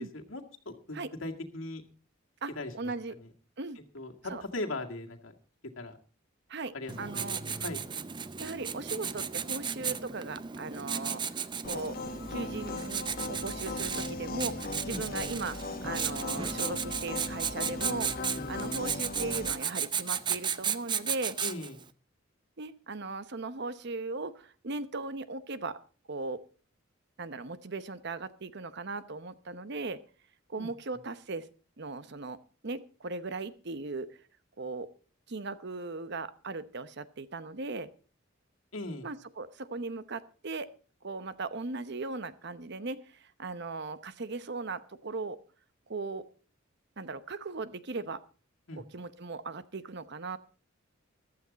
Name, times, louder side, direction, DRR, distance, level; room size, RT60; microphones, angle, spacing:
voice 1, 0.0-1.8 2.6-2.7 3.2-3.3 3.9-5.3 5.8-6.0 6.7-7.8 14.9-15.1 18.3-18.6 21.4-21.8 30.6-30.7 38.7-39.1 48.7-48.8, left 2 dB, 90° left, 2 dB, 2.1 m, -39 dB
voice 2, 2.4-3.1 3.6-3.8 4.3-4.4 6.5-7.4 8.4-11.2 11.7-12.0 12.3-21.4 22.6-25.8 26.1-26.4 27.2-30.0 30.5-31.5 31.8-34.1 34.6-34.9 35.3-37.9 39.0-40.7 41.0-45.4 45.9-46.2 47.0-48.2 48.9-50.4, right 3 dB, 60° right, 13 dB, 0.9 m, -38 dB
Writing, 6.9-21.8, right 7 dB, 25° right, 0.5 m, -35 dB
sound 1, 11.6-19.5, left 2 dB, 50° left, 1.3 m, -38 dB
14.5 x 12.5 x 4.1 m, 0.38 s
head